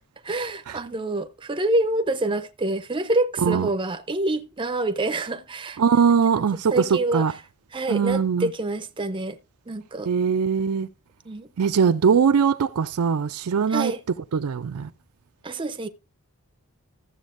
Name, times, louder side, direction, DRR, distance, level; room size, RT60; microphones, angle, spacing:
voice 1, 0.2-5.8 6.7-7.3 7.7-9.4 9.7-10.1 11.3-11.5 13.7-14.0 15.4-15.9, right 2 dB, 25° right, 0.6 m, -26 dB
voice 2, 5.8-7.3 7.9-8.5 10.1-10.9 11.6-13.9 14.3-14.9, right 6 dB, 85° right, 0.5 m, -21 dB
14.5 x 7.2 x 2.5 m
head